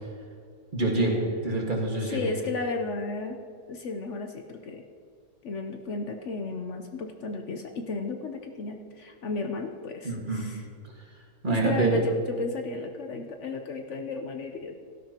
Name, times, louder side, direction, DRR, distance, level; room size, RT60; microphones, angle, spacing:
voice 1, 0.7-2.3 10.0-10.4 11.4-12.0, right 2 dB, 35° right, -1 dB, 1.9 m, -26 dB
voice 2, 2.0-3.4 3.7-4.9 5.4-10.7 11.5-14.8, left 3 dB, 60° left, 4 dB, 1.0 m, -34 dB
17.5 x 12.0 x 2.9 m, 2.2 s
omnidirectional pair, 1.5 m